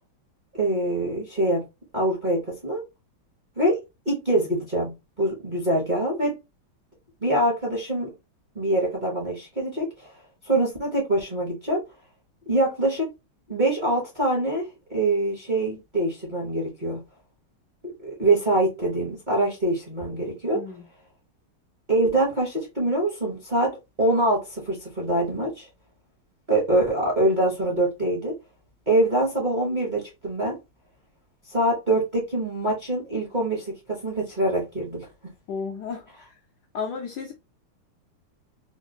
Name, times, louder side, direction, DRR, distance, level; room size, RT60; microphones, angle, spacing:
voice 1, 0.5-1.6 1.9-2.8 3.6-3.8 4.1-6.3 7.2-8.1 8.5-10.1 10.4-11.8 12.5-13.1 13.5-17.0 18.0-20.6 21.9-23.7 24.0-25.7 26.5-28.3 28.9-30.5 31.5-35.1, right 1 dB, 35° right, 0.7 m, -24 dB
voice 2, 20.5-20.9 35.5-36.4 36.7-37.3, left 5 dB, 75° left, 0.9 m, -33 dB
3.7 x 2.4 x 2.7 m
omnidirectional pair, 2.3 m